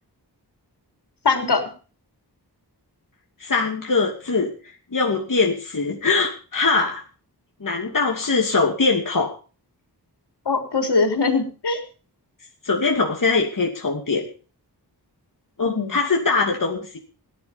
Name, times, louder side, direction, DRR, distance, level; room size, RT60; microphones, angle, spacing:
voice 1, 1.2-1.7 10.5-11.8 15.6-15.9, left 4 dB, 70° left, 4 dB, 4.3 m, -21 dB
voice 2, 3.4-4.5 4.9-7.0 7.6-9.3 12.6-14.3 15.6-17.0, left 4 dB, 50° left, 0 dB, 2.7 m, -22 dB
17.0 x 11.0 x 5.4 m, 0.37 s
wide cardioid pair, 90°, 41 cm